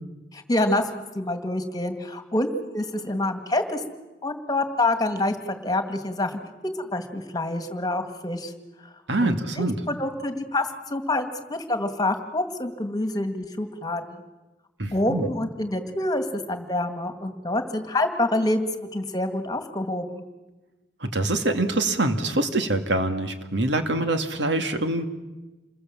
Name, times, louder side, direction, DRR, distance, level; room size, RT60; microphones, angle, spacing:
voice 1, 0.3-3.8 4.2-6.4 6.8-8.5 9.2-14.2 14.9-20.2, left 1 dB, 20° left, 8 dB, 2.1 m, -27 dB
voice 2, 9.1-9.8 14.8-15.3 21.0-25.1, right 2 dB, 85° right, 7 dB, 2.2 m, -25 dB
28.0 x 21.5 x 7.6 m, 1.1 s
head